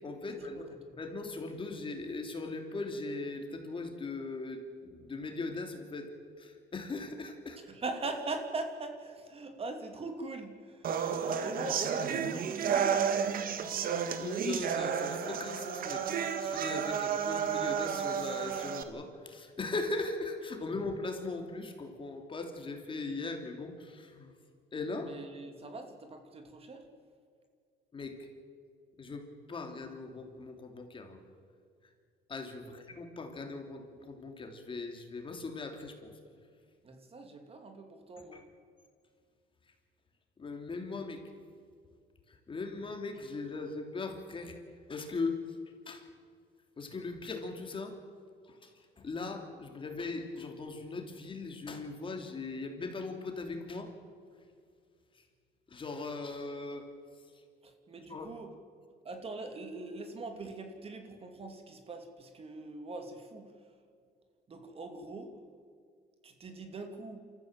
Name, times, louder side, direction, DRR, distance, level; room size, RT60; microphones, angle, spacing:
voice 1, 0.0-0.6 0.9-6.1 6.4-7.6 11.1-11.4 14.2-24.3 24.7-25.1 27.9-28.2 29.0-31.2 32.3-36.2 38.3-38.4 40.4-41.2 42.3-44.6 44.9-45.4 45.9-46.1 46.8-48.0 48.5-53.9 55.7-56.9 58.1-58.3, left 3 dB, 30° left, 4 dB, 3.1 m, -39 dB
voice 2, 7.7-10.9 11.2-14.0 25.0-26.9 32.7-32.9 36.8-38.4 57.6-58.5 59.0-63.5 64.5-65.3 66.2-67.2, right 3 dB, 35° right, 5 dB, 2.6 m, -41 dB
sound 1, 10.8-18.8, right 7 dB, 60° right, 1.7 m, -32 dB
27.5 x 14.5 x 7.6 m, 2.2 s
cardioid pair, 110°, 17 cm